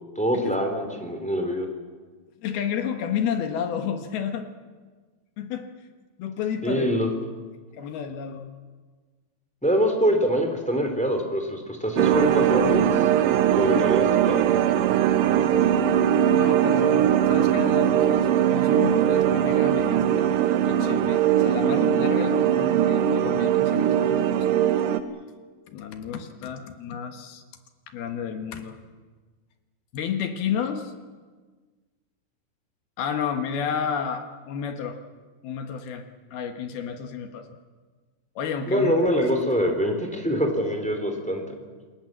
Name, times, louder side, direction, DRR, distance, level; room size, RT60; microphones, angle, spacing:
voice 1, 0.2-1.7 6.6-7.1 9.6-12.8 13.5-14.4 38.7-41.4, equal, ahead, 4 dB, 2.4 m, -24 dB
voice 2, 2.4-4.5 5.4-5.7 6.2-6.9 7.7-8.5 16.3-20.3 20.7-24.6 25.7-27.4 27.9-28.8 29.9-30.9 33.0-35.0 35.4-37.5 38.4-38.9 39.3-39.4, left 7 dB, 70° left, 7 dB, 3.1 m, -31 dB
sound 1, 12.0-25.0, right 10 dB, 80° right, 3.1 m, -21 dB
28.0 x 19.5 x 7.5 m, 1.4 s
omnidirectional pair, 4.8 m